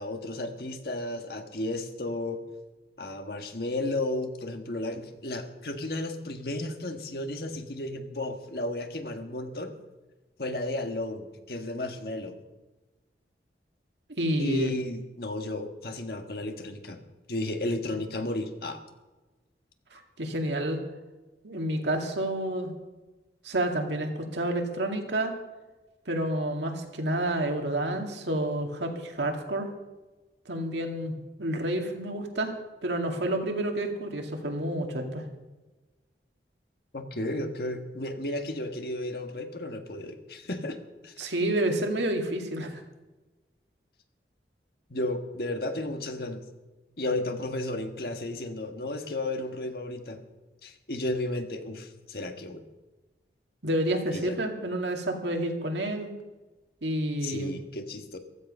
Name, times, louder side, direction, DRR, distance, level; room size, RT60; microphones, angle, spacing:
voice 1, 0.0-2.4 3.0-9.7 10.4-12.4 14.4-17.0 17.3-18.8 36.9-40.8 41.0-41.3 44.9-46.4 47.0-50.2 50.6-52.6 54.1-54.4 57.2-58.2, left 1 dB, 60° left, 5 dB, 1.6 m, -33 dB
voice 2, 14.1-14.7 19.9-20.8 21.4-22.7 23.4-25.3 26.1-29.7 30.5-32.5 32.8-35.3 41.2-42.7 53.6-56.1 56.8-57.5, right 1 dB, 85° right, 3 dB, 2.3 m, -29 dB
15.5 x 13.0 x 5.5 m, 1.1 s
head